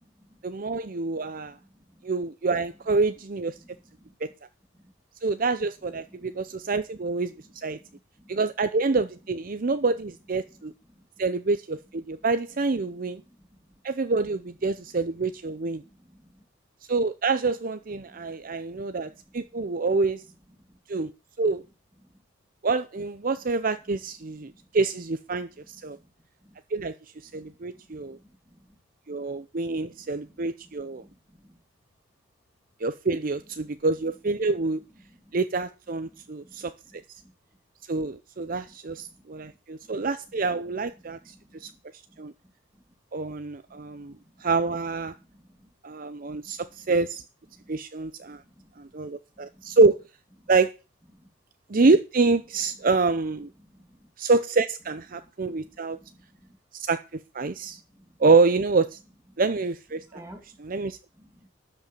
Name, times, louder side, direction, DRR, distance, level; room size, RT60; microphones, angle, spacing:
voice 1, 0.4-1.6 2.0-3.5 4.2-4.3 5.2-7.3 7.6-7.8 8.3-10.7 11.2-13.2 13.8-15.8 16.9-20.2 20.9-21.1 21.4-21.6 22.6-26.0 26.7-26.9 27.2-28.2 29.1-31.0 32.8-34.8 35.3-36.7 37.9-41.7 42.2-42.3 43.1-45.1 45.8-47.2 47.7-48.4 48.8-50.0 50.5-50.8 51.7-53.5 54.2-56.0 56.7-57.8 58.2-59.0 59.4-60.0 60.6-61.0, right 3 dB, 45° right, 0.6 m, -26 dB
voice 2, 1.1-2.0 3.5-4.1 4.7-4.9 6.1-6.7 7.3-8.4 9.5-9.7 10.5-11.3 12.2-12.3 12.9-13.8 14.8-14.9 15.6-16.5 18.0-19.7 20.6-20.7 22.0-22.2 24.4-24.7 25.8-26.1 26.4-26.6 27.3-28.8 29.6-31.6 33.6-33.7 34.9-35.4 35.9-37.3 38.4-39.6 39.8-40.1 41.0-41.8 42.1-42.2 42.7-43.0 43.7-44.5 45.2-45.7 46.4-46.9 47.5-47.7 48.3-48.9 49.4-49.8 50.4-50.5 51.1-51.3 53.6-54.1 55.1-56.6 57.4-58.2 59.3-59.4 59.9-60.6 61.2-61.5, equal, 15° right, 2.4 m, -57 dB
12.5 x 5.5 x 7.6 m
head